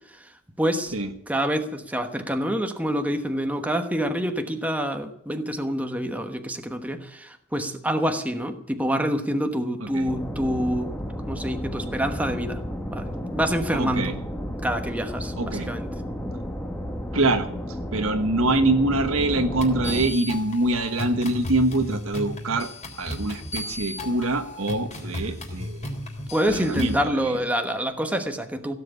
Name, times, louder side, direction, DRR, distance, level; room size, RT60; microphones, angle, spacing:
voice 1, 0.1-0.9 1.3-10.9 11.2-12.6 12.9-14.2 14.6-15.9 26.3-28.7, equal, 5° right, 5 dB, 1.1 m, -27 dB
sound 1, 10.1-20.1, equal, 10° left, 1.4 m, -32 dB
voice 2, 13.8-14.1 15.4-15.7 17.1-17.5 17.9-22.7 23.0-25.8 26.5-27.3, right 2 dB, 70° right, 8 dB, 1.4 m, -24 dB
sound 2, 19.6-27.0, left 1 dB, 35° left, 3.6 m, -35 dB
16.5 x 7.7 x 9.8 m, 0.76 s
head